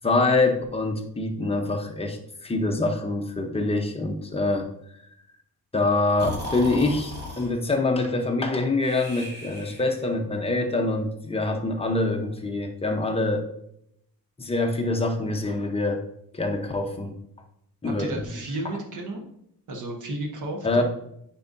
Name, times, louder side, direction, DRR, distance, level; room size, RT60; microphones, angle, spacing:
voice 1, 0.0-4.7 5.7-13.4 14.4-16.0 16.3-17.2 17.8-18.3 20.6-20.8, left 2 dB, 15° left, 3 dB, 0.7 m, -25 dB
Breathing, 6.2-7.5 8.8-10.1, left 1 dB, 30° right, 1.8 m, -36 dB
voice 2, 18.0-19.2 19.7-20.8, right 1 dB, 55° right, 2 dB, 1.4 m, -33 dB
9.3 x 4.5 x 2.6 m, 0.75 s
cardioid pair, 140°, 36 cm